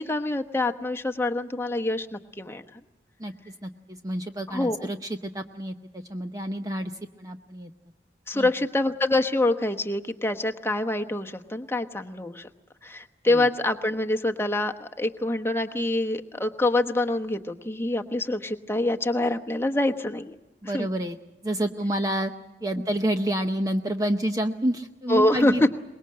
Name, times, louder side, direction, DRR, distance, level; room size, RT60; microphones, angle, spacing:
voice 1, 0.0-2.8 4.5-4.9 8.3-12.5 12.8-20.4 20.7-20.9 25.1-25.7, left 2 dB, 15° left, 5 dB, 1.1 m, -25 dB
voice 2, 3.2-6.9 7.2-7.7 8.3-8.5 13.2-13.5 20.6-21.2 21.4-22.3 22.6-25.7, right 1 dB, 20° right, 6 dB, 0.8 m, -29 dB
24.0 x 21.5 x 7.6 m, 1.0 s
head